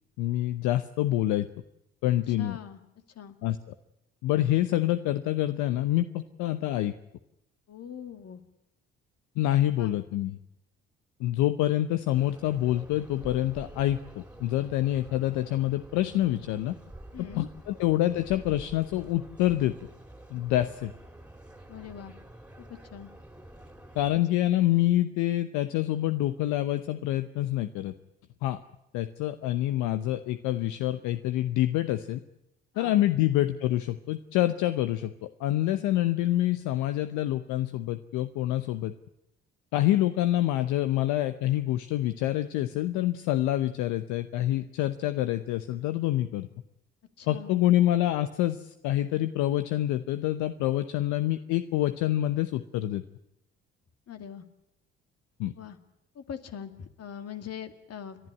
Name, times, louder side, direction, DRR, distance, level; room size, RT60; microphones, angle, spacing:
voice 1, 0.2-1.5 2.0-2.6 3.4-3.6 4.2-6.9 9.4-10.4 11.2-16.7 17.3-19.7 20.3-20.9 24.0-27.9 28.4-28.6 28.9-32.2 32.8-38.9 39.7-46.5 47.3-53.0 55.4-55.5, left 14 dB, 75° left, 11 dB, 0.8 m, -26 dB
voice 2, 2.4-2.8 3.2-3.4 7.7-8.4 9.8-10.0 17.1-17.5 21.7-22.1 22.7-23.1 24.1-24.3 32.7-33.0 47.2-47.6 54.1-54.4 55.6-55.8 56.2-58.2, left 8 dB, 55° left, 8 dB, 2.2 m, -42 dB
sound 1, 12.1-24.2, right 1 dB, 5° right, 2.7 m, -48 dB
29.5 x 11.0 x 9.9 m, 0.85 s
hypercardioid pair, 55°, 30 cm